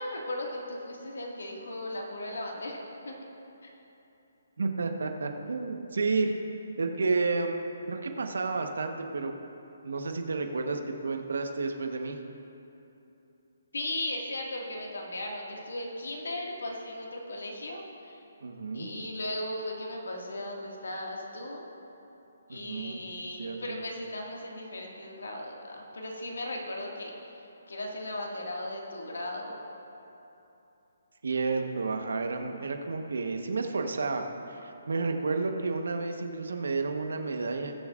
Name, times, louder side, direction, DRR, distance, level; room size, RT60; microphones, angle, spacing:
voice 1, 0.0-3.2 3.6-3.7 13.7-18.2 18.7-21.7 22.5-27.2 27.7-29.6, left 1 dB, 80° left, -1 dB, 1.9 m, -37 dB
voice 2, 4.6-6.3 6.8-9.4 9.8-12.2 18.4-18.9 22.5-23.0 23.4-23.8 31.2-37.7, right 3 dB, 80° right, 5 dB, 1.1 m, -31 dB
21.5 x 7.1 x 2.5 m, 3.0 s
hypercardioid pair, 150°, 0 cm